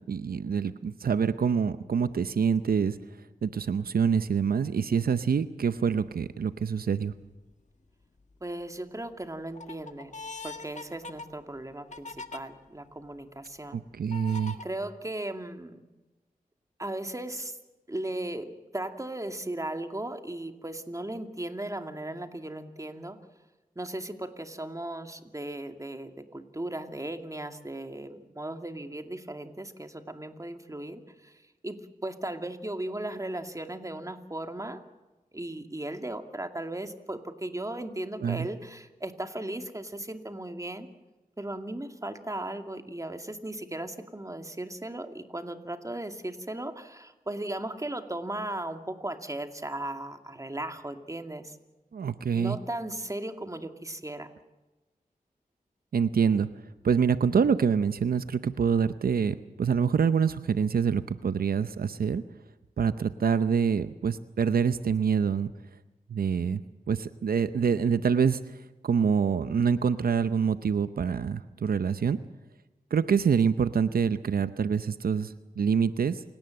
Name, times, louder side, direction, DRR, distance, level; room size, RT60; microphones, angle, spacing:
voice 1, 0.0-3.0 3.4-7.1 13.7-14.6 38.2-38.5 51.9-52.6 55.9-56.5 56.8-62.2 62.8-65.5 66.1-66.6 66.9-68.4 68.8-72.2 72.9-76.2, right 6 dB, 85° right, 13 dB, 0.7 m, -26 dB
sound 1, 6.0-6.3 6.9-7.5 8.0-8.7 9.1-12.4 13.0-13.1 14.1-14.6, left 3 dB, 55° left, 1.7 m, -42 dB
voice 2, 8.4-10.1 10.4-13.8 14.6-15.8 16.8-17.6 17.9-23.2 23.8-34.8 35.3-40.9 41.4-51.6 52.3-54.3, right 1 dB, 20° right, 6 dB, 2.4 m, -37 dB
28.5 x 17.5 x 7.8 m, 1.1 s
cardioid pair, 55°, 15 cm